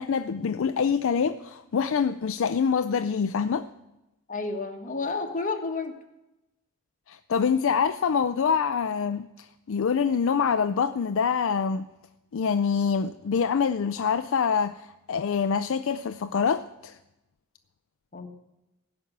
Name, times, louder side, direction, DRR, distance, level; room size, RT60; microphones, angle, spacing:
voice 1, 0.0-3.7 7.1-11.9 12.3-17.0, left 6 dB, 65° left, 0.4 m, -25 dB
voice 2, 4.3-5.9 18.1-18.3, left 3 dB, 35° left, 1.5 m, -31 dB
16.0 x 6.1 x 9.3 m
head